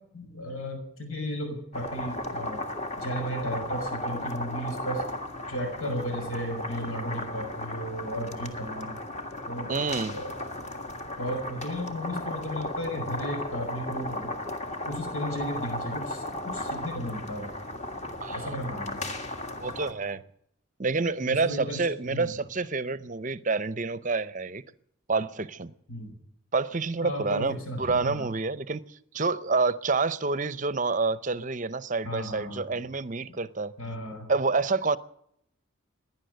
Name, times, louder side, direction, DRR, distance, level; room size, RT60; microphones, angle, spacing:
voice 1, 0.1-2.6 3.0-5.0 5.5-9.0 9.5-9.7 10.1-10.3 11.2-14.3 14.9-16.2 16.5-17.5 18.3-19.0 21.3-22.3 25.9-26.1 27.0-28.3 32.0-32.8 33.8-34.3, equal, 85° left, 6.1 m, -34 dB
sound 1, 1.7-19.9, left 1 dB, 30° left, 1.7 m, -35 dB
voice 2, 9.7-10.1 18.2-18.5 19.6-20.2 20.8-24.6 25.1-25.7 26.5-28.8 29.1-33.7 34.3-35.0, right 4 dB, 35° right, 0.6 m, -28 dB
16.5 x 10.5 x 8.0 m
head